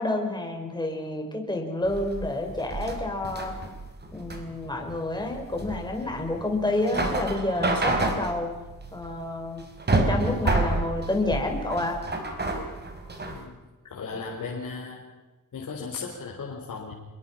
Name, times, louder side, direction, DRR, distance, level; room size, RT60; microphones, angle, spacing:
voice 1, 0.0-3.5 4.1-8.5 8.9-9.6 10.1-12.0, left 2 dB, 15° left, 2 dB, 5.3 m, -29 dB
sound 1, 1.9-13.4, right 2 dB, 30° right, 4.2 m, -29 dB
voice 2, 13.8-15.1 15.5-16.9, left 4 dB, 65° left, -2 dB, 4.2 m, -36 dB
27.5 x 22.0 x 5.8 m, 1.2 s
wide cardioid pair, 125°, 33 cm